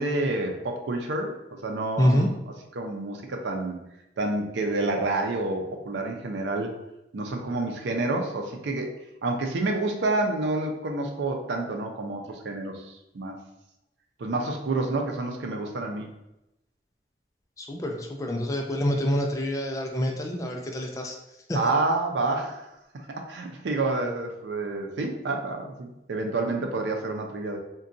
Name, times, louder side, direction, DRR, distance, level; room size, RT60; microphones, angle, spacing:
voice 1, 0.0-1.3 1.6-2.3 2.7-3.8 4.2-6.7 7.1-8.9 9.2-13.4 14.2-16.1 21.5-22.7 23.3-27.6, right 2 dB, 85° right, 2 dB, 0.5 m, -28 dB
voice 2, 2.0-2.3 17.6-21.1 21.5-21.6, equal, 20° left, 1 dB, 0.3 m, -26 dB
3.8 x 2.2 x 2.5 m, 0.90 s
head